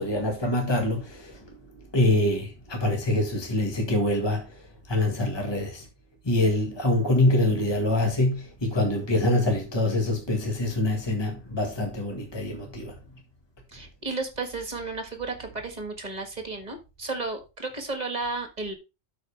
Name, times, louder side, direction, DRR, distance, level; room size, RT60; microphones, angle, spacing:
voice 1, 0.0-1.4 1.9-4.5 4.9-5.9 6.3-12.9, left 1 dB, 20° left, 1.6 m, -25 dB
voice 2, 13.7-18.7, right 3 dB, 30° right, 1.7 m, -33 dB
12.0 x 4.7 x 3.3 m
omnidirectional pair, 1.3 m